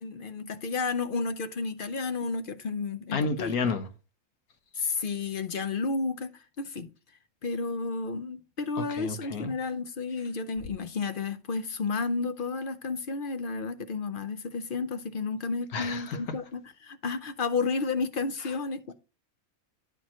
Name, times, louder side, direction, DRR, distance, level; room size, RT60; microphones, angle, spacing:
voice 1, 0.0-3.6 4.7-6.9 7.4-18.9, left 4 dB, 50° left, 0.6 m, -32 dB
voice 2, 3.1-3.9 8.9-9.5 15.7-16.2, left 4 dB, 80° left, 1.6 m, -30 dB
9.9 x 4.6 x 4.3 m
omnidirectional pair, 1.5 m